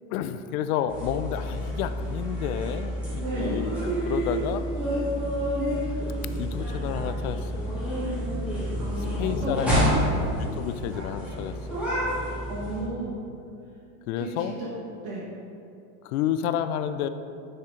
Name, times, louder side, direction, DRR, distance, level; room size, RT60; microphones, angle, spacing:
voice 1, 0.1-4.7 6.4-7.6 9.2-10.0 10.4-11.8 14.1-14.5 16.0-17.1, left 10 dB, 90° left, 11 dB, 0.5 m, -30 dB
sound 1, 0.9-12.8, equal, 5° right, 1.5 m, -29 dB
voice 2, 3.2-3.6 8.8-10.3 12.5-13.1 14.2-14.7 15.0-15.2, right 2 dB, 40° right, -6 dB, 1.3 m, -33 dB
9.7 x 4.4 x 3.7 m, 2.6 s
supercardioid pair, 170°, 42 cm